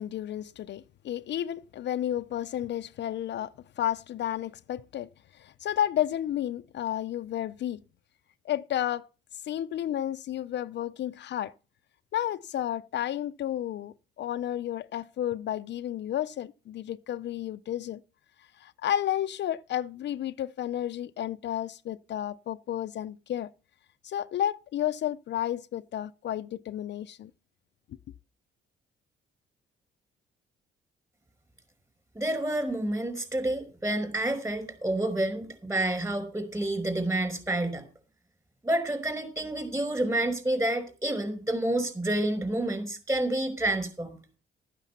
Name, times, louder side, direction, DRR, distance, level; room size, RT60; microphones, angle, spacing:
voice 1, 0.0-7.8 8.4-9.1 9.4-11.5 12.1-18.0 18.6-23.5 24.0-27.3, left 11 dB, 60° left, 0.6 m, -32 dB
voice 2, 32.2-37.8 38.6-44.2, right 1 dB, 15° right, 5.2 m, -29 dB
13.5 x 9.2 x 5.7 m
cardioid pair, 90°, 20 cm